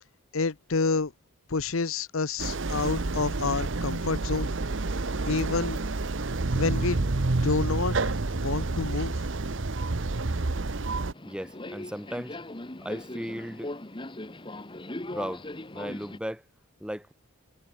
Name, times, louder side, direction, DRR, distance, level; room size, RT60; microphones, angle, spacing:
voice 1, 0.3-1.1 1.5-4.5 5.3-5.8 6.5-7.0 7.4-9.1, left 4 dB, 70° left, 0.9 m, -28 dB
sound 1, 2.4-11.1, right 3 dB, 55° right, 1.0 m, -29 dB
Subway metro underground, 11.1-16.2, left 1 dB, 25° left, 1.2 m, -39 dB
voice 2, 11.2-12.4 12.8-13.7 15.1-15.4 15.7-16.4 16.8-17.1, equal, 5° right, 1.6 m, -36 dB
head